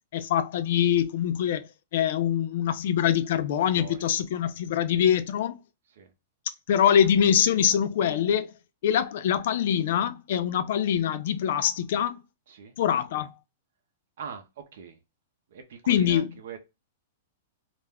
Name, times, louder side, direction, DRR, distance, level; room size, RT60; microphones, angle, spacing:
voice 1, 0.1-5.5 6.7-8.5 8.8-12.2 12.8-13.3 15.9-16.3, left 9 dB, 60° left, 0.4 m, -24 dB
voice 2, 3.7-4.1 6.0-6.1 12.5-12.7 14.2-14.4 14.7-15.0 15.5-16.6, right 6 dB, 70° right, 0.6 m, -42 dB
2.4 x 2.2 x 3.3 m
hypercardioid pair, 155°, 0 cm